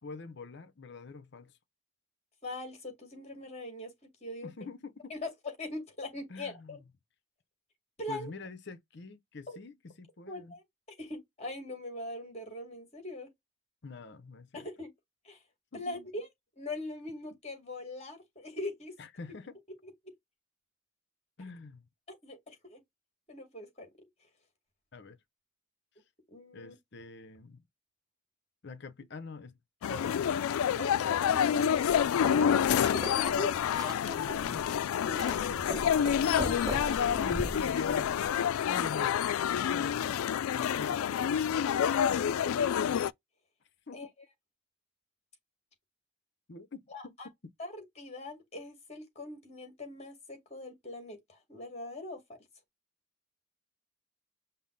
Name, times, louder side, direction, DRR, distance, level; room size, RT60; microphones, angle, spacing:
voice 1, 0.0-1.6 4.4-5.1 6.3-6.8 8.1-10.6 13.8-14.7 15.7-16.1 19.0-19.6 21.4-21.9 24.9-25.2 26.5-27.6 28.6-29.6 29.9-30.4 34.1-35.2 36.7-36.8 37.2-41.5 43.9-44.1 46.5-47.3, left 4 dB, 55° left, 0.7 m, -45 dB
voice 2, 2.4-3.9 4.2-4.5 5.1-5.3 5.6-6.8 8.0-8.3 9.5-9.6 10.3-10.6 11.0-13.3 14.5-14.9 15.2-15.4 15.7-16.3 16.6-18.9 22.1-22.8 23.3-23.9 26.3-26.8 29.9-30.2 30.8-34.4 35.0-36.4 36.8-37.3 40.6-41.0 42.2-42.8 43.9-44.1 46.9-47.3 47.6-52.2, left 2 dB, 30° left, 2.1 m, -41 dB
sound 1, 29.8-43.1, left 8 dB, 90° left, 0.3 m, -28 dB
sound 2, 31.7-38.3, right 2 dB, 20° right, 0.4 m, -41 dB
5.5 x 2.0 x 3.9 m
head